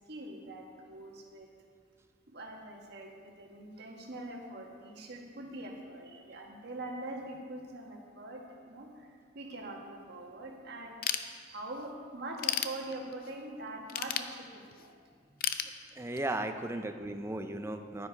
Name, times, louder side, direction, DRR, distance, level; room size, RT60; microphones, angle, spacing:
voice 1, 0.1-1.5 2.3-14.9 16.5-16.9, right 2 dB, 55° right, 0 dB, 1.5 m, -44 dB
Ratchet pawl / Tools, 11.0-11.8 12.2-13.3 13.9-14.9 15.4-16.4, left 10 dB, 50° left, 0.5 m, -34 dB
voice 2, 15.9-18.1, right 1 dB, 15° right, 7 dB, 0.5 m, -36 dB
10.5 x 10.0 x 4.5 m, 2.1 s
head